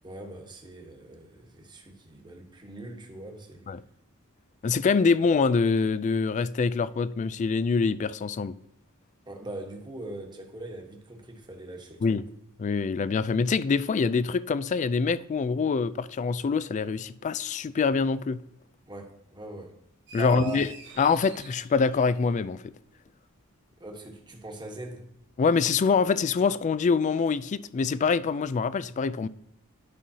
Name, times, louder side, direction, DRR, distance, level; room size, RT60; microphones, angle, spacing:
voice 1, 0.0-3.7 9.3-12.2 18.9-19.8 20.1-20.6 23.8-25.1, right 2 dB, 20° right, 1.3 m, -41 dB
voice 2, 4.6-8.5 12.0-12.2 12.6-18.4 20.1-20.7 21.0-22.6 25.4-29.3, left 5 dB, 35° left, 0.3 m, -25 dB
sound 1, 20.1-22.6, right 4 dB, 55° right, 1.5 m, -48 dB
11.5 x 5.4 x 2.8 m
head